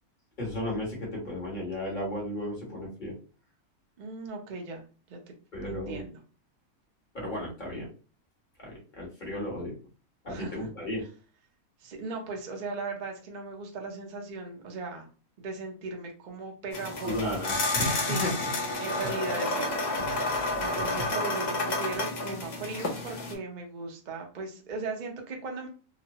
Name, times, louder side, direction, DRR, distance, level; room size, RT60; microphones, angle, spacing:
voice 1, 0.4-3.1 5.5-6.1 7.1-7.9 8.6-9.7 10.2-11.0 17.0-18.3 20.0-20.3 20.6-21.0, left 1 dB, 35° left, -4 dB, 1.2 m, -34 dB
voice 2, 4.0-4.8 5.1-5.2 5.6-6.2 10.3-10.5 11.8-15.1 15.4-17.3 18.1-18.3 18.8-19.8 20.1-25.7, right 3 dB, 55° right, 2 dB, 0.5 m, -38 dB
sound 1, 16.7-23.3, left 2 dB, 50° left, 0.5 m, -30 dB
3.0 x 2.0 x 2.7 m, 0.37 s
omnidirectional pair, 1.5 m